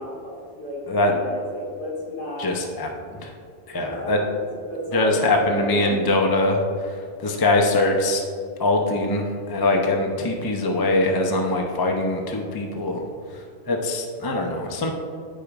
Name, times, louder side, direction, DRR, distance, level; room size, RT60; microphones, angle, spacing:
voice 1, 0.0-2.5 3.7-6.0, left 1 dB, 65° left, -5 dB, 2.3 m, -33 dB
voice 2, 2.4-2.9 3.2-3.3 3.7-4.2 4.9-6.6 7.2-8.2 8.6-13.0 13.7-14.9, left 2 dB, 25° left, 2 dB, 0.5 m, -22 dB
13.5 x 4.9 x 2.4 m, 2.3 s
omnidirectional pair, 1.2 m